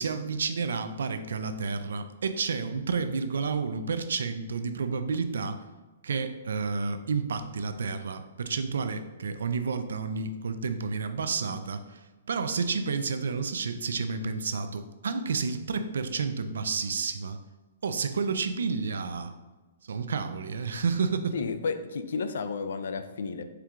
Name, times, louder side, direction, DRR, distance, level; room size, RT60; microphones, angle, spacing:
voice 1, 0.0-5.6 6.0-12.0 12.3-17.4 17.8-19.3 19.8-21.4, right 5 dB, 85° right, 10 dB, 0.3 m, -30 dB
voice 2, 21.3-23.4, left 5 dB, 75° left, 9 dB, 0.3 m, -32 dB
4.4 x 3.5 x 2.4 m, 1.2 s
hypercardioid pair, 155°, 0 cm